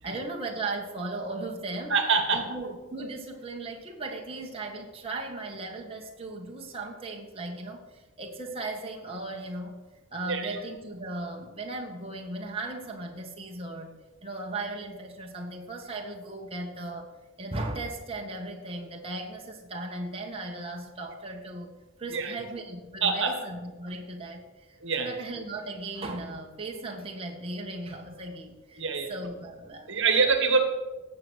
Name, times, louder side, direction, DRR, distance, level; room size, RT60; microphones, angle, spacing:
voice 1, 0.0-2.0 2.3-9.8 10.1-17.1 17.4-21.7 22.0-30.0, right 2 dB, 25° right, 0 dB, 1.5 m, -37 dB
voice 2, 1.9-2.5 10.2-10.6 22.1-22.4 23.0-23.3 24.8-25.2 28.8-29.1 29.9-30.6, right 4 dB, 55° right, 7 dB, 1.7 m, -25 dB
18.5 x 7.9 x 6.4 m, 1.2 s
head